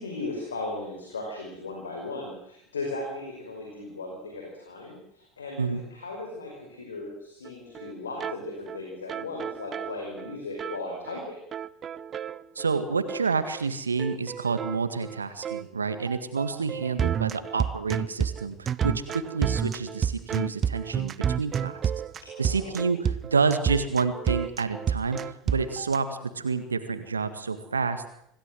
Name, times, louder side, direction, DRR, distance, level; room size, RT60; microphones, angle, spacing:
voice 1, 0.0-11.4 22.3-23.0, left 2 dB, 80° left, 1 dB, 5.3 m, -37 dB
sound 1, 7.4-7.5 7.7-7.9 8.2-8.3 8.7-8.8 9.1-10.8 11.0-11.2 11.5-12.8 13.1-13.2 13.5-13.7 14.0-26.0, right 8 dB, 35° right, 0.8 m, -30 dB
voice 2, 12.6-21.8 22.4-25.2 25.5-28.0, right 4 dB, 85° right, 10 dB, 1.8 m, -28 dB
26.5 x 16.5 x 7.8 m, 0.76 s
figure-of-eight pair, 70°, 0 cm